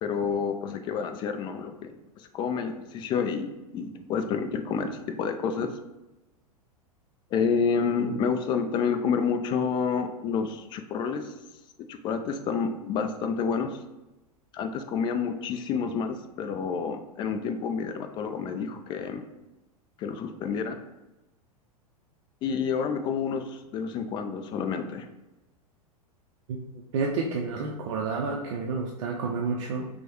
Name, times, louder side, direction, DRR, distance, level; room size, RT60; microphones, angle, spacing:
voice 1, 0.0-5.8 7.3-11.3 11.8-13.8 14.5-19.2 20.0-20.8 22.4-25.1, left 6 dB, 25° left, 8 dB, 0.3 m, -29 dB
voice 2, 26.9-29.9, right 4 dB, 50° right, -1 dB, 0.5 m, -30 dB
6.0 x 2.1 x 2.9 m, 1.0 s
figure-of-eight pair, 90°, 20 cm